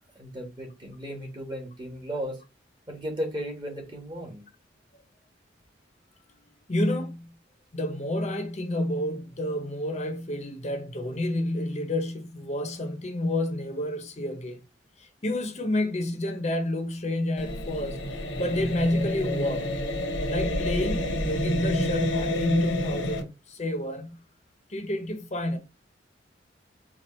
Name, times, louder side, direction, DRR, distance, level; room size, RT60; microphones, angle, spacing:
voice 1, 0.1-2.4 2.9-4.5, equal, 25° right, 1.4 m, -35 dB
voice 2, 6.7-7.3 7.7-14.6 15.0-19.7 20.2-24.2 24.7-25.6, left 1 dB, 35° left, 0.8 m, -29 dB
sound 1, 17.4-23.2, left 1 dB, 90° left, 1.1 m, -29 dB
4.6 x 2.4 x 4.2 m
head